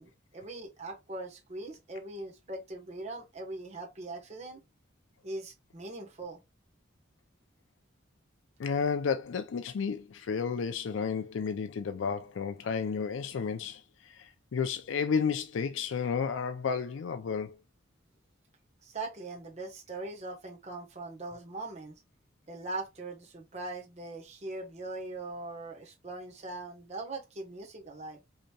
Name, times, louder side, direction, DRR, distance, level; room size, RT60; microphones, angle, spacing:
voice 1, 0.0-4.6 5.2-6.4 18.8-22.0 22.5-28.2, right 2 dB, 35° right, 1.1 m, -41 dB
voice 2, 8.6-17.6, left 6 dB, 75° left, 0.4 m, -32 dB
5.1 x 2.9 x 2.2 m
head